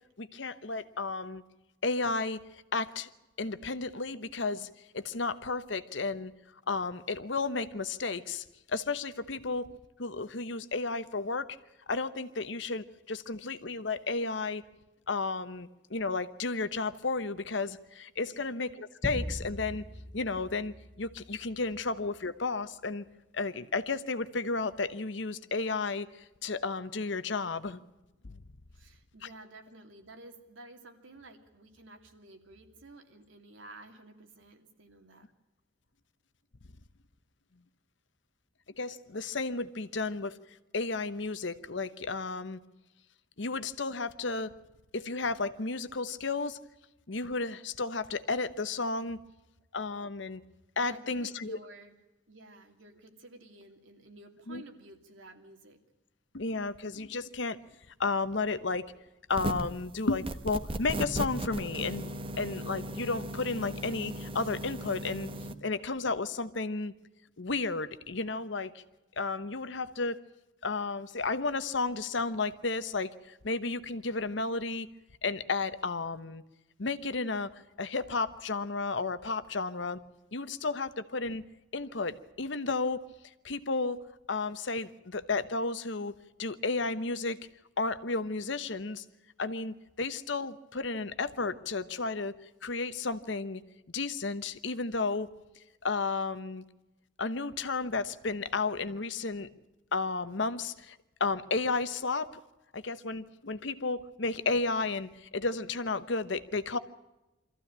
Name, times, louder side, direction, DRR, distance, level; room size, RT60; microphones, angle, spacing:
voice 1, 0.2-1.4 1.8-2.4 2.7-3.1 3.4-4.7 4.9-6.3 6.7-9.7 10.0-11.5 11.9-14.6 15.1-19.8 20.1-23.0 23.3-27.8 28.2-28.4 38.8-40.3 40.7-42.6 43.4-44.5 44.9-46.6 47.1-49.2 49.7-50.4 50.8-51.6 54.5-54.6 56.3-57.6 58.0-58.9 59.3-62.1 62.3-65.3 65.6-66.9 67.4-68.8 69.2-70.2 70.6-74.9 75.2-76.4 76.8-77.5 77.8-80.0 80.3-81.4 81.7-83.0 83.4-84.0 84.3-86.1 86.4-87.4 87.8-89.0 89.4-92.3 92.6-93.6 93.9-95.3 95.8-96.6 97.2-99.5 99.9-102.4 102.7-106.8, left 3 dB, 65° left, 12 dB, 1.0 m, -33 dB
sound 1, 19.0-21.7, left 1 dB, 10° left, 0.7 m, -40 dB
voice 2, 28.7-35.3 50.8-52.0 52.3-55.8, right 2 dB, 80° right, 5 dB, 2.7 m, -52 dB
sound 2, 59.3-59.8 60.2-65.5, right 1 dB, 30° right, 1.1 m, -36 dB
24.5 x 14.5 x 8.8 m, 1.0 s
head